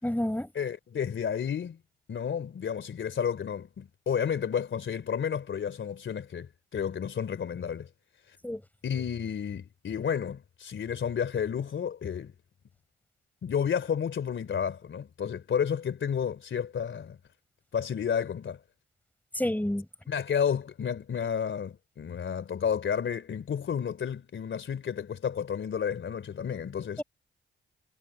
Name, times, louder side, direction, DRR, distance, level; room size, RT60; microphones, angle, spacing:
voice 1, 0.0-0.5 8.4-8.6 19.3-19.9, left 1 dB, 10° left, 6.8 m, -29 dB
voice 2, 0.5-1.8 2.1-7.9 8.3-8.4 8.8-12.3 13.4-17.2 17.7-18.6 20.1-27.0, left 7 dB, 65° left, 3.2 m, -31 dB
supercardioid pair, 50°, 21 cm